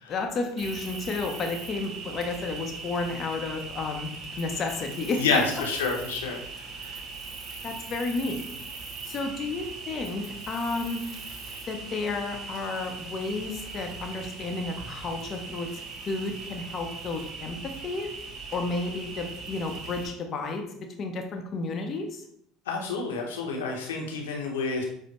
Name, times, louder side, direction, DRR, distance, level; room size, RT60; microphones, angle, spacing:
voice 1, 0.1-4.1 4.4-5.4 7.6-8.4 9.1-11.0 11.7-15.7 16.1-18.1 18.5-20.6 21.0-22.2, left 3 dB, 45° left, 4 dB, 0.6 m, -32 dB
Cricket, 0.6-20.1, right 4 dB, 45° right, 0.9 m, -40 dB
voice 2, 5.2-7.0 22.7-24.8, left 4 dB, 85° left, 0 dB, 0.9 m, -29 dB
6.2 x 2.1 x 3.0 m, 0.70 s
hypercardioid pair, 80°, 0 cm